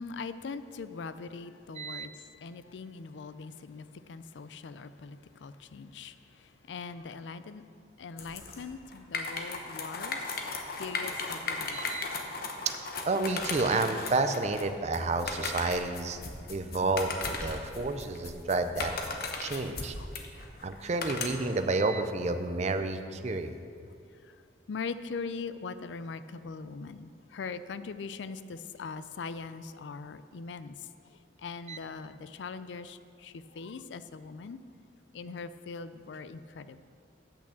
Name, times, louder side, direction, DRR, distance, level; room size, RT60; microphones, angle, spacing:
voice 1, 0.0-7.6 8.0-10.4 10.8-12.0 16.8-17.0 20.0-20.1 24.1-24.4 24.7-34.6 35.1-36.8, left 4 dB, 85° left, 13 dB, 0.4 m, -41 dB
voice 2, 1.8-2.1 11.7-12.1 12.7-12.8 13.1-16.2 16.5-18.9 19.4-19.9 20.6-23.5 31.7-31.8, right 3 dB, 40° right, 8 dB, 0.5 m, -30 dB
sound 1, 8.2-21.6, left 3 dB, 55° left, 1.0 m, -37 dB
8.5 x 6.1 x 7.2 m, 2.4 s
head